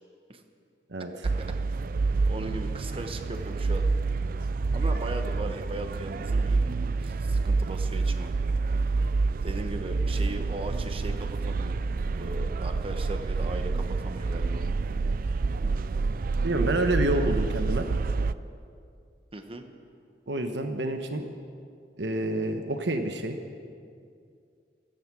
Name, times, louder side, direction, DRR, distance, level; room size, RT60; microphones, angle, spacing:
sound 1, 1.2-18.3, right 3 dB, 55° right, 0.4 m, -28 dB
voice 1, 2.3-3.9 4.7-6.6 7.0-8.3 9.4-11.8 12.1-14.7 19.3-19.6, right 1 dB, 30° right, 6 dB, 1.1 m, -38 dB
voice 2, 16.4-17.8 20.3-21.3 22.0-23.4, right 1 dB, 85° right, 6 dB, 1.1 m, -28 dB
16.0 x 14.5 x 6.2 m, 2.3 s
head